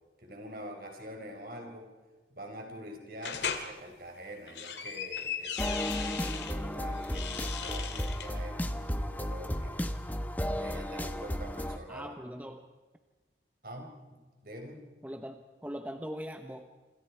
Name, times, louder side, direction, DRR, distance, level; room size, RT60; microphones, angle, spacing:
voice 1, 0.2-1.9 2.3-9.7 10.5-12.1 13.6-14.8, equal, 55° right, 3 dB, 4.6 m, -45 dB
sound 1, 3.2-3.7 4.3-6.5 7.0-8.3, left 7 dB, 80° left, 2.3 m, -37 dB
sound 2, 5.6-11.8, equal, 10° left, 1.1 m, -34 dB
voice 2, 11.9-12.7 15.0-16.7, equal, 10° right, 5 dB, 1.0 m, -41 dB
28.0 x 26.5 x 4.7 m, 1.3 s
head